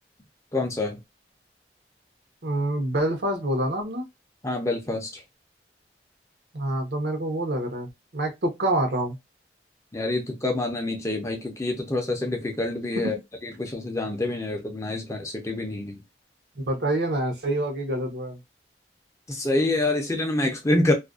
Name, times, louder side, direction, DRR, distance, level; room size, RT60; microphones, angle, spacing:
voice 1, 0.5-1.0 4.4-5.2 9.9-13.2 13.4-16.0 19.3-20.9, left 2 dB, 15° left, 0.5 m, -26 dB
voice 2, 2.4-4.0 6.5-9.2 13.0-13.1 16.6-18.4, right 1 dB, 65° right, 0.8 m, -26 dB
2.4 x 2.1 x 2.4 m
head